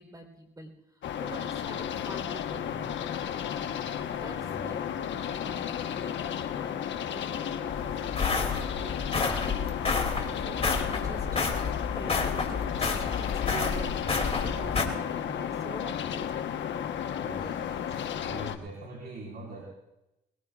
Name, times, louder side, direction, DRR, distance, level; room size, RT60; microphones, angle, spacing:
voice 1, 0.0-3.1 4.1-4.8 5.4-9.7 10.2-14.0 14.6-16.5 17.9-18.0, right 1 dB, 20° right, 4 dB, 3.7 m, -46 dB
sound 1, 1.0-18.6, left 9 dB, 70° left, 1.1 m, -33 dB
voice 2, 4.3-4.8 14.6-14.9 17.2-17.9 18.2-19.6, right 1 dB, 55° right, -2 dB, 4.7 m, -43 dB
sound 2, 7.7-14.8, left 4 dB, 30° left, 2.7 m, -30 dB
22.0 x 21.0 x 2.4 m, 0.90 s
cardioid pair, 90°, 20 cm